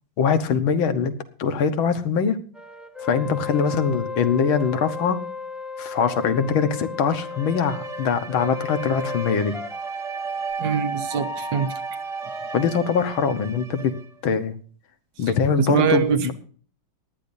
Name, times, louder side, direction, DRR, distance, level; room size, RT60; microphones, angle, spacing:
voice 1, 0.2-1.1 1.4-2.4 3.0-5.2 5.8-9.6 12.5-13.9 14.2-14.6 15.2-16.3, left 6 dB, 85° left, 9 dB, 2.1 m, -22 dB
sound 1, 2.5-13.1, left 1 dB, ahead, 0.5 m, -33 dB
Bowed string instrument, 7.1-14.2, right 6 dB, 25° right, 0.9 m, -39 dB
voice 2, 10.6-11.7 15.6-16.3, right 7 dB, 70° right, 9 dB, 1.8 m, -23 dB
18.5 x 12.0 x 2.7 m, 0.42 s
omnidirectional pair, 2.2 m